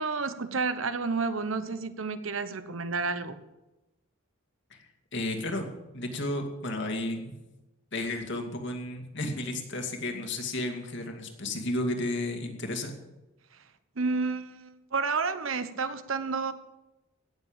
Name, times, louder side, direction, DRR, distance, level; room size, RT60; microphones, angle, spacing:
voice 1, 0.0-3.4 14.0-16.5, right 4 dB, 75° right, 11 dB, 1.1 m, -30 dB
voice 2, 5.1-5.7 5.9-7.3 7.9-12.9, left 1 dB, 60° left, 4 dB, 2.4 m, -32 dB
17.0 x 7.3 x 8.9 m, 1.0 s
head